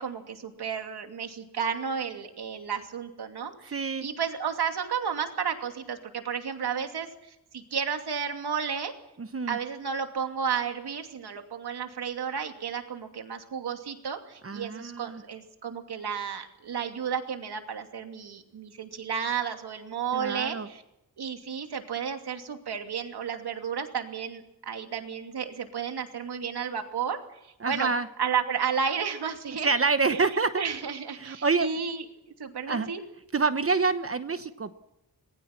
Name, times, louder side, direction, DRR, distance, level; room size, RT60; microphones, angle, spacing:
voice 1, 0.0-8.9 9.5-20.8 21.2-27.9 28.2-29.7 30.1-30.2 30.5-32.0 32.4-33.0, right 7 dB, 85° right, 5 dB, 2.8 m, -32 dB
voice 2, 3.7-4.1 9.2-9.6 14.4-15.2 20.1-20.7 27.6-28.1 29.6-30.6 31.2-31.7 32.7-32.9 33.3-34.7, right 4 dB, 35° right, 10 dB, 1.0 m, -27 dB
27.5 x 20.5 x 6.0 m, 0.87 s
wide cardioid pair, 135°, 38 cm